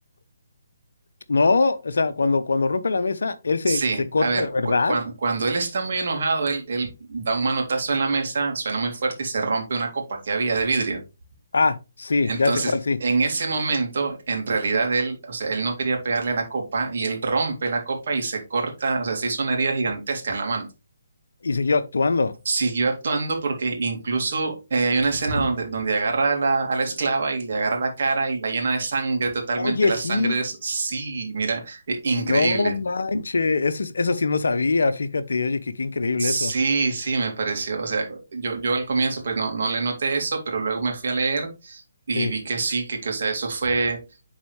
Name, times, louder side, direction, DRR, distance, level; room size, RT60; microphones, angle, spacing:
voice 1, 1.3-3.8 4.1-5.0 11.5-13.0 21.4-22.3 29.6-30.4 32.1-36.5 42.2-42.3, left 3 dB, 65° left, 0.7 m, -23 dB
voice 2, 3.7-11.0 12.2-12.7 13.0-20.7 22.5-32.8 36.2-41.8 42.1-44.0, right 4 dB, 55° right, 2.3 m, -25 dB
10.0 x 4.0 x 3.2 m
figure-of-eight pair, 140°, 0 cm